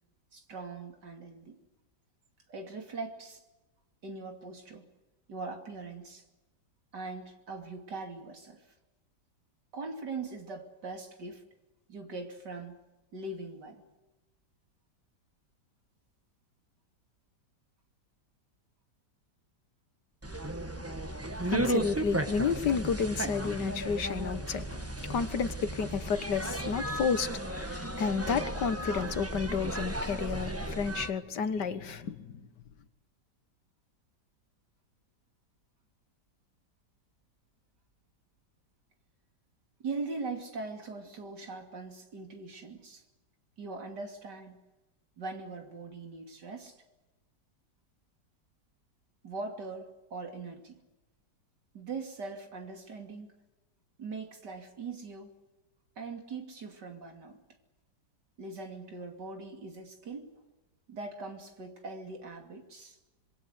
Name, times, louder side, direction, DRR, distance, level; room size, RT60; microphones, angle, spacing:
voice 1, 0.3-1.6 2.5-3.4 4.0-4.9 5.3-6.2 6.9-8.7 9.7-11.5 11.9-12.8 13.1-13.8 39.8-43.0 43.6-44.6 45.2-46.8 49.2-50.8 51.7-53.3 54.0-55.3 56.0-57.4 58.4-60.3 60.9-63.0, right 3 dB, 75° right, 3.4 m, -41 dB
sound 1, 20.2-31.1, right 1 dB, 10° right, 1.2 m, -35 dB
voice 2, 21.5-32.5, left 6 dB, 75° left, 2.0 m, -31 dB
26.0 x 22.0 x 8.1 m
omnidirectional pair, 1.8 m